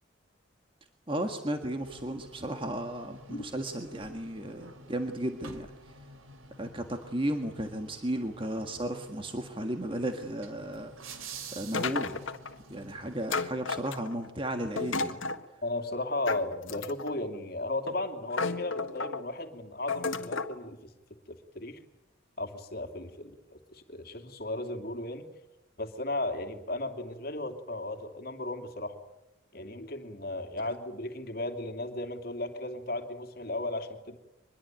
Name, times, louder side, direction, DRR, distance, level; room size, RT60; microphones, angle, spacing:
voice 1, 1.1-5.7 6.6-10.9 11.5-12.2 12.7-15.2, right 1 dB, 25° right, 5 dB, 1.7 m, -34 dB
sound 1, 1.8-13.5, right 3 dB, 85° right, 3.4 m, -49 dB
sound 2, 11.7-12.5 13.3-14.3 14.8-15.4 16.3-17.2 17.9-18.0 18.3-19.2 19.9-20.6, left 4 dB, 70° left, 1.7 m, -32 dB
voice 2, 15.6-20.9 21.3-21.8 22.4-25.3 25.8-29.0 29.5-34.2, left 2 dB, 50° left, 6 dB, 2.8 m, -35 dB
24.5 x 21.5 x 9.2 m, 0.94 s
head